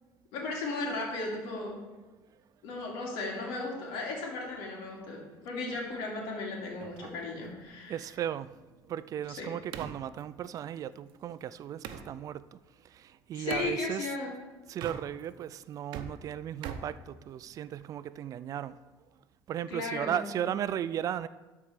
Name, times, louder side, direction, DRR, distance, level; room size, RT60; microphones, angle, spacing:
voice 1, 0.3-1.8 2.6-8.0 9.3-9.5 13.3-14.3 19.7-20.3, left 3 dB, 85° left, 2.8 m, -36 dB
sound 1, 6.8-12.1 13.5-13.8 14.7-15.4 15.7-17.7, right 7 dB, 70° right, 0.8 m, -45 dB
voice 2, 7.9-8.5 8.9-12.5 12.8-14.1 14.7-18.8 19.5-21.3, right 10 dB, 45° right, 0.3 m, -36 dB
12.5 x 4.6 x 5.0 m
cardioid pair, 115°, 8 cm